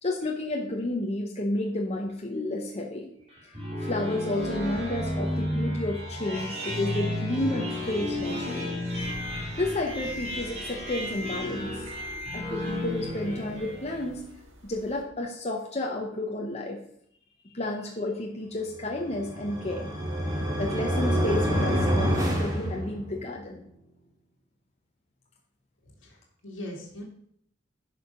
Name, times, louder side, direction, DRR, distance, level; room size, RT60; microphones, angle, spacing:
voice 1, 0.0-3.1 3.8-8.8 9.2-11.9 12.3-14.3 14.6-16.8 17.4-19.9 20.6-23.6, left 1 dB, 35° left, 0 dB, 1.0 m, -31 dB
sound 1, 3.3-14.1, left 1 dB, 35° right, 2.6 m, -33 dB
sound 2, 9.0-15.0, equal, 85° right, 1.9 m, -42 dB
sound 3, 19.0-23.3, equal, 20° right, 2.0 m, -27 dB
voice 2, 26.0-27.0, left 1 dB, 70° left, -3 dB, 1.9 m, -40 dB
10.5 x 5.1 x 5.2 m, 0.68 s
head